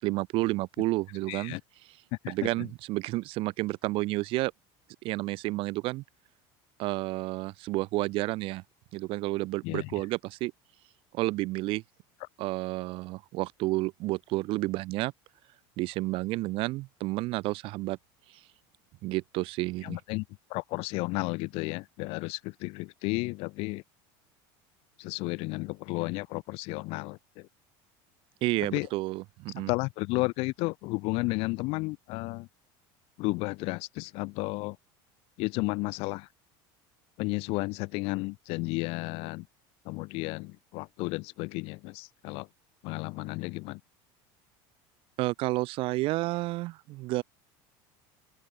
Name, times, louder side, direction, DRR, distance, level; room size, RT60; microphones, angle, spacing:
voice 1, 0.0-1.6 2.3-4.5 5.0-6.0 6.8-8.6 8.9-10.5 11.1-11.8 12.4-15.1 15.8-18.0 19.0-20.0 28.4-29.7 45.2-47.2, right 20 dB, 50° right, 4.1 m, -30 dB
voice 2, 1.3-1.6 2.1-2.7 9.6-10.1 19.8-20.2 20.5-23.8 25.0-27.5 28.6-28.9 29.7-32.5 33.2-34.8 35.4-36.3 37.2-39.5 39.8-42.5 42.8-43.8, left 25 dB, 55° left, 3.2 m, -33 dB
open air
cardioid pair, 155°, 11 cm